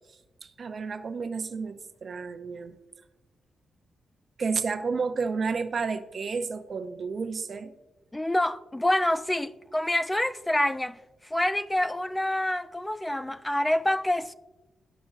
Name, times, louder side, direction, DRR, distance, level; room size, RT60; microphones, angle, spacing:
voice 1, 0.4-2.8 4.4-7.7, right 5 dB, 55° right, 0.7 m, -31 dB
voice 2, 8.1-11.0 11.3-14.3, left 1 dB, 10° left, 0.3 m, -27 dB
14.0 x 5.1 x 2.5 m
cardioid pair, 75°, 0 cm